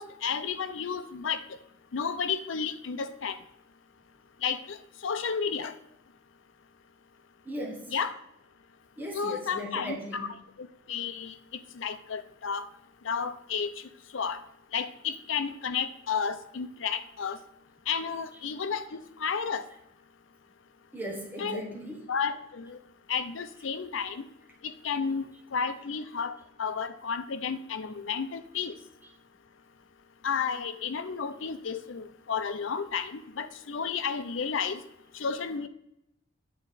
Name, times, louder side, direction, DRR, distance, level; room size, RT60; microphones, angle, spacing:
voice 1, 0.0-1.4 1.9-3.4 4.4-4.8 5.0-5.7 7.9-8.1 9.1-10.3 10.6-11.3 11.8-12.7 13.0-13.7 14.1-14.4 14.7-17.4 17.9-19.7 21.4-21.6 22.1-22.8 23.1-24.2 24.6-26.3 26.6-28.7 30.2-34.8 35.2-35.7, left 6 dB, 90° left, 11 dB, 0.6 m, -32 dB
voice 2, 7.4-7.9 9.0-10.4 20.9-22.1, equal, 10° right, -2 dB, 1.1 m, -37 dB
8.6 x 4.6 x 4.0 m, 0.82 s
head